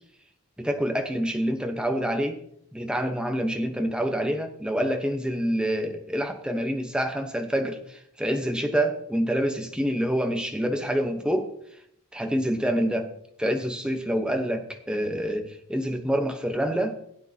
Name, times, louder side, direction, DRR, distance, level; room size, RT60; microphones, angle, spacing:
voice 1, 0.6-2.4 2.7-11.5 12.1-13.1 13.4-17.0, equal, 5° right, 5 dB, 1.0 m, -27 dB
16.5 x 8.8 x 2.9 m, 0.72 s
head